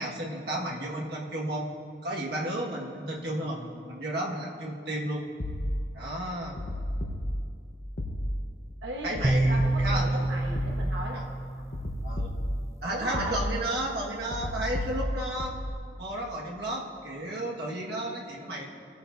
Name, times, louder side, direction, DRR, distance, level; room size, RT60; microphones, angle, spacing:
voice 1, 0.0-1.7 2.0-5.3 5.9-6.6 9.0-10.0 11.1-11.2 12.0-12.3 12.8-15.5 16.0-18.6, right 1 dB, 65° right, -3 dB, 1.6 m, -33 dB
sound 1, 5.4-6.0 6.6-7.6 8.0-8.6 9.1-11.2 11.7-12.8 13.1-13.8 14.3-15.7, equal, 50° left, 0.9 m, -32 dB
voice 2, 8.8-9.2 9.5-11.3 12.9-13.4, right 1 dB, 85° right, -2 dB, 1.1 m, -36 dB
sound 2, 9.2-12.5, right 2 dB, 15° right, 0.5 m, -28 dB
18.0 x 9.8 x 2.6 m, 2.3 s
head